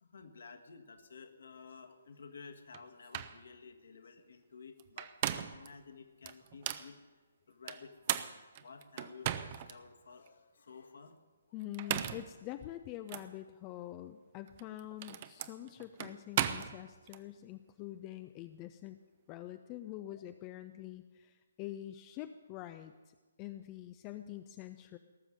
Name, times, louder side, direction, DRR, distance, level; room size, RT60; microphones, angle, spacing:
voice 1, 0.0-7.0 7.4-8.3 8.6-11.2 11.4-11.5 11.8-11.9 20.0-20.2, left 5 dB, 55° left, 7 dB, 1.6 m, -53 dB
sound 1, 2.7-2.8 3.1-3.4 4.8-5.7 6.3-6.9 7.7-9.7 10.3-10.4 11.6-12.3 13.1-13.3 14.5-17.2, right 11 dB, 30° right, 0.6 m, -37 dB
voice 2, 11.5-19.0 19.3-25.0, left 13 dB, 20° left, 9 dB, 0.5 m, -46 dB
18.0 x 7.2 x 9.3 m, 1.3 s
figure-of-eight pair, 135°, 0 cm